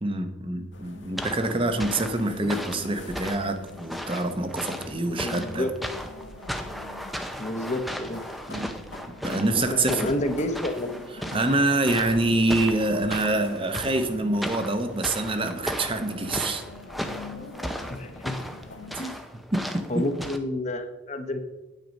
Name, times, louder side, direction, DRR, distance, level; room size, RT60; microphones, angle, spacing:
voice 1, 0.0-5.7 8.5-8.7 9.2-10.1 11.1-16.6 18.9-19.1 19.5-20.1, right 2 dB, 25° right, 7 dB, 0.9 m, -26 dB
sound 1, 0.7-18.9, left 2 dB, 60° left, 1.5 m, -44 dB
sound 2, 1.2-20.4, equal, ahead, 0.6 m, -36 dB
voice 2, 5.2-5.7 7.4-8.2 9.5-10.9 17.9-18.4 19.0-19.2 19.9-21.4, left 1 dB, 35° left, 7 dB, 1.0 m, -30 dB
9.2 x 8.6 x 5.2 m, 1.1 s
head